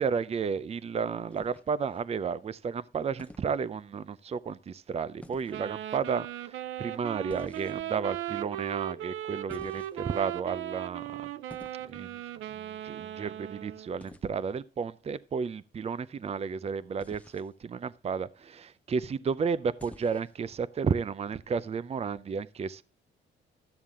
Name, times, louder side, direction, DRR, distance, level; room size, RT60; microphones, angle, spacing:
voice 1, 0.0-11.3 11.8-12.2 12.5-22.8, right 6 dB, 30° right, 0.5 m, -32 dB
sound 1, 1.3-2.0 3.2-3.5 5.2-5.6 7.3-8.0 9.5-10.2 11.5-11.8 14.0-14.3 17.0-17.5 19.8-20.4, left 1 dB, 5° left, 0.7 m, -50 dB
Wind instrument woodwind instrument, 5.5-14.0, right 12 dB, 90° right, 0.5 m, -38 dB
13.0 x 7.2 x 3.6 m
cardioid pair, 90°, 20 cm